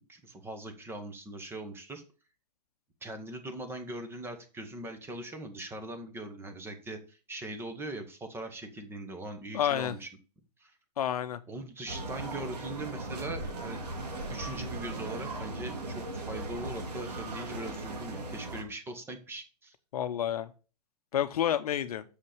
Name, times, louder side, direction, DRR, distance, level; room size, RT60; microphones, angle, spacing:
voice 1, 0.1-2.0 3.0-10.1 10.6-10.8 11.5-13.8 14.3-19.7, right 1 dB, 10° right, 1.5 m, -41 dB
voice 2, 9.5-9.9 11.0-11.4 19.9-20.5 21.1-22.0, left 10 dB, 60° left, 0.9 m, -29 dB
sound 1, 11.9-18.6, right 2 dB, 70° right, 3.1 m, -38 dB
6.8 x 5.4 x 6.9 m
hypercardioid pair, 125°, 21 cm